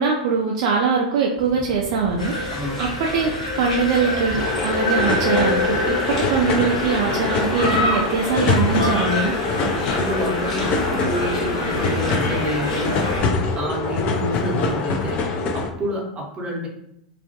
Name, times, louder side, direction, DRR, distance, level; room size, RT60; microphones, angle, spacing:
voice 1, 0.0-9.3, right 5 dB, 50° right, -1 dB, 0.3 m, -22 dB
sound 1, 1.4-13.7, left 1 dB, 15° left, 0.8 m, -38 dB
sound 2, 2.2-13.2, left 1 dB, 70° left, 0.9 m, -26 dB
sound 3, 4.4-15.7, left 3 dB, 40° left, 0.4 m, -24 dB
voice 2, 9.9-13.0 13.5-16.7, equal, 25° right, -1 dB, 0.7 m, -28 dB
2.3 x 2.1 x 2.8 m, 0.78 s
figure-of-eight pair, 90°, 4 cm